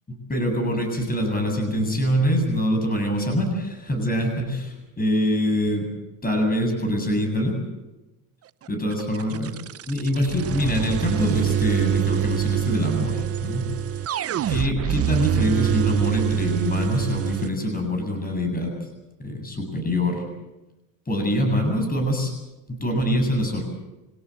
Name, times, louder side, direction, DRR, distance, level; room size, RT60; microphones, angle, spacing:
voice 1, 0.3-5.9 6.2-7.6 8.7-9.5 9.9-13.7 14.5-18.9 19.2-20.2 21.1-22.3 22.7-23.6, equal, 20° left, 4 dB, 7.8 m, -24 dB
Sfx Impulse Shoot, 8.9-17.5, right 10 dB, 30° right, 0.7 m, -25 dB
26.0 x 17.5 x 8.0 m, 1.0 s
supercardioid pair, 105°, 45 cm